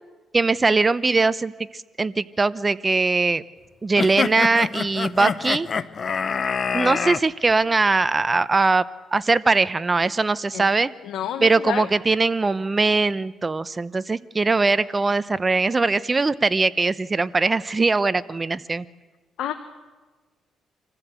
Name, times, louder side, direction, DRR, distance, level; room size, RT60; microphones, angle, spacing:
voice 1, 0.3-3.4 3.8-5.7 6.7-8.8 9.1-10.9 11.4-18.8, right 3 dB, 25° right, 15 dB, 0.7 m, -21 dB
sound 1, 4.0-7.2, left 6 dB, 45° left, 0.8 m, -26 dB
voice 2, 11.0-11.9 19.4-19.5, left 10 dB, 80° left, 7 dB, 1.1 m, -29 dB
26.0 x 15.0 x 8.2 m, 1.3 s
cardioid pair, 90°, 0 cm